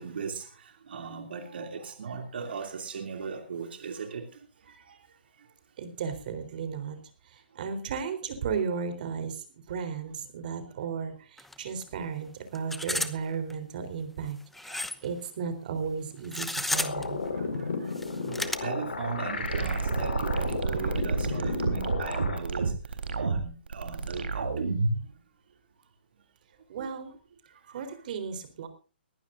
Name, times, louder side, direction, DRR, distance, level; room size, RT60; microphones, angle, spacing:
voice 1, 0.0-5.5 10.8-10.9 14.7-14.8 17.0-24.6 26.8-26.9 27.5-27.8, right 5 dB, 70° right, 4 dB, 2.8 m, -39 dB
voice 2, 5.8-7.0 7.2-17.2 26.7-27.2 27.7-28.7, right 6 dB, 55° right, 9 dB, 3.8 m, -35 dB
sound 1, 11.4-11.5 11.8-11.9 12.5-13.1 13.5-13.6 14.5-15.1 16.2-17.1 17.9-18.6, left 2 dB, 5° left, 0.9 m, -32 dB
sound 2, 16.7-22.4, left 4 dB, 85° left, 4.9 m, -34 dB
sound 3, 19.4-25.0, right 4 dB, 85° right, 3.7 m, -29 dB
21.5 x 15.0 x 2.6 m, 0.36 s
hypercardioid pair, 145°, 6 cm